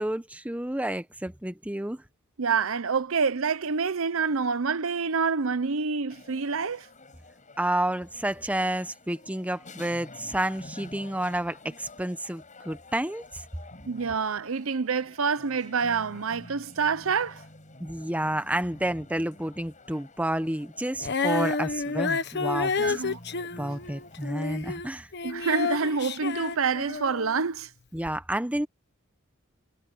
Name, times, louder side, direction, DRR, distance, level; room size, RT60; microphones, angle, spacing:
voice 1, 0.0-2.0 7.6-13.4 17.8-23.0 23.6-25.1 27.9-28.7, right 1 dB, 5° right, 1.0 m, -30 dB
voice 2, 2.4-6.9 13.9-17.4 22.8-23.2 25.2-27.7, right 5 dB, 70° right, 0.8 m, -27 dB
sound 1, 6.1-24.3, left 2 dB, 35° left, 7.3 m, -50 dB
Female singing, 21.0-27.4 28.0-28.1, left 4 dB, 55° left, 1.3 m, -30 dB
head